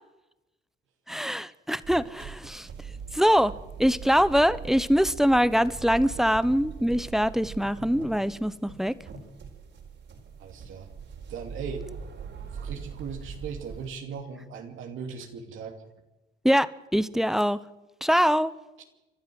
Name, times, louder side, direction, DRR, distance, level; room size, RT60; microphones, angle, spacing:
voice 1, 1.1-2.7 3.1-3.5 3.8-8.9 16.4-17.6 18.0-18.5, equal, ahead, 16 dB, 0.9 m, -23 dB
sound 1, 1.8-13.9, right 6 dB, 65° right, 4.6 m, -42 dB
voice 2, 10.4-10.9 11.3-11.8 12.5-15.8 18.8-18.9, right 6 dB, 80° right, 3 dB, 2.8 m, -38 dB
30.0 x 12.0 x 7.8 m, 1.0 s
cardioid pair, 90°, 20 cm